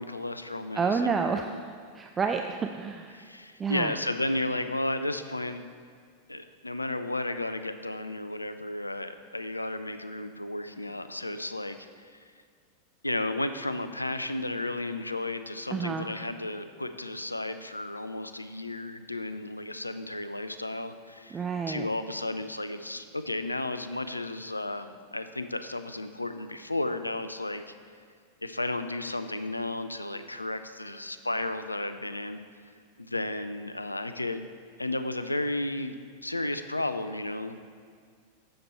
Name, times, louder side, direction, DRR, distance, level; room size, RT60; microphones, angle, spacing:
voice 1, 0.0-1.6 3.1-5.6 6.3-12.2 13.0-27.6 28.4-32.4 33.0-34.5 34.8-36.0 36.2-37.7, left 2 dB, 85° left, 10 dB, 0.3 m, -33 dB
voice 2, 0.7-1.5 1.9-3.2 3.6-3.9 15.7-16.1 21.3-21.8, right 5 dB, 20° right, 4 dB, 0.3 m, -29 dB
7.6 x 6.7 x 4.3 m, 2.1 s
figure-of-eight pair, 90°, 0 cm